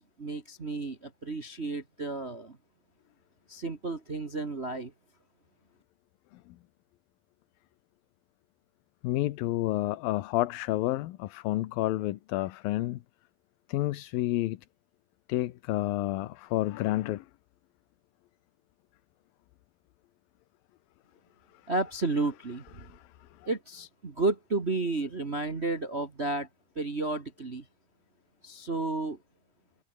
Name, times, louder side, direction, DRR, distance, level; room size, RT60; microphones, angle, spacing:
voice 1, 0.0-2.6 3.5-4.9 21.7-22.6 23.5-26.5 26.7-27.6 28.4-29.2, right 3 dB, 55° right, 0.7 m, -32 dB
voice 2, 9.0-13.0 13.7-14.6 15.3-17.3 22.8-23.0, left 16 dB, 80° left, 2.7 m, -30 dB
omnidirectional pair, 4.2 m